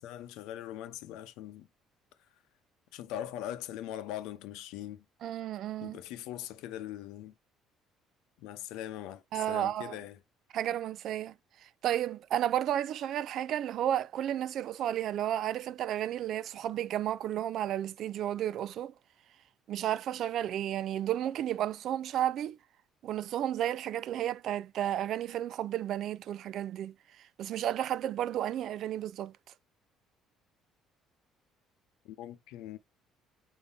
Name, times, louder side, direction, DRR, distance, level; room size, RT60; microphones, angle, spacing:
voice 1, 0.0-1.7 2.9-5.0 5.8-7.3 8.4-10.2 32.0-32.8, left 12 dB, 85° left, 0.7 m, -41 dB
voice 2, 5.2-6.0 9.3-10.0 10.5-11.3 11.6-18.9 19.7-22.6 23.0-29.3, right 11 dB, 55° right, 0.3 m, -32 dB
5.4 x 2.8 x 3.4 m
cardioid pair, 140°, 0 cm